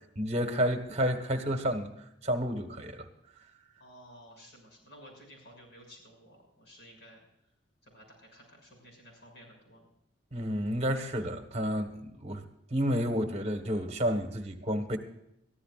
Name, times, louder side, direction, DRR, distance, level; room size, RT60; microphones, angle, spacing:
voice 1, 0.1-1.9 2.2-3.1 10.3-12.4 12.7-15.0, equal, 35° right, 7 dB, 1.4 m, -30 dB
voice 2, 3.8-7.2 7.8-9.8, equal, 60° left, 1 dB, 6.7 m, -54 dB
23.0 x 14.5 x 2.5 m, 0.80 s
head